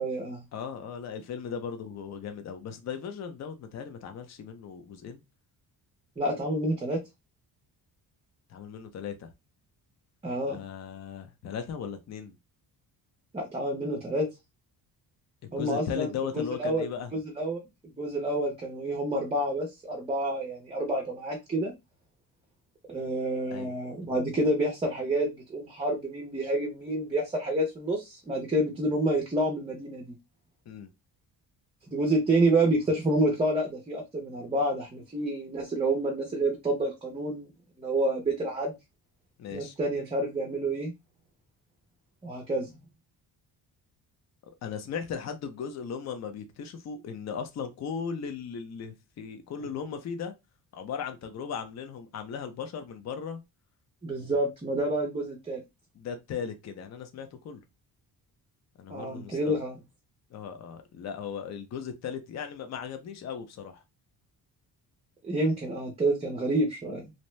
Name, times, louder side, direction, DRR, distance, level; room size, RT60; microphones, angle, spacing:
voice 1, 0.0-0.4 6.2-7.0 10.2-10.6 13.3-14.3 15.5-16.9 17.1-17.6 18.0-21.7 22.9-30.1 31.9-37.5 37.8-38.7 39.5-40.9 42.2-42.8 54.0-55.6 58.9-59.8 65.2-67.1, right 1 dB, 15° right, 0.5 m, -28 dB
voice 2, 0.5-5.2 8.5-9.3 10.5-12.4 15.4-17.1 23.5-23.7 30.7-30.9 39.4-39.7 44.6-50.3 50.7-53.4 54.2-54.4 55.9-57.6 58.8-59.6 60.3-63.8, left 7 dB, 45° left, 0.5 m, -37 dB
2.7 x 2.1 x 3.0 m
wide cardioid pair, 165°, 40 cm